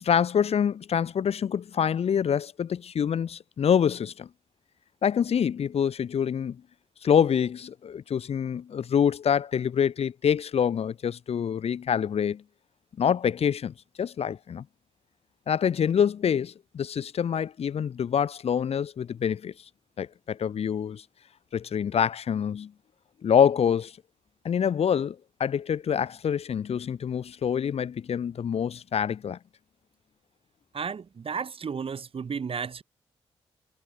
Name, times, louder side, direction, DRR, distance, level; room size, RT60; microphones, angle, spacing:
voice 1, 0.0-4.3 5.0-6.6 7.0-12.4 13.0-14.7 15.5-19.5 20.0-21.0 21.5-22.7 23.2-23.9 24.4-29.4, left 8 dB, 65° left, 1.8 m, -26 dB
voice 2, 30.7-32.8, right 6 dB, 55° right, 6.1 m, -33 dB
cardioid pair, 60°, 11 cm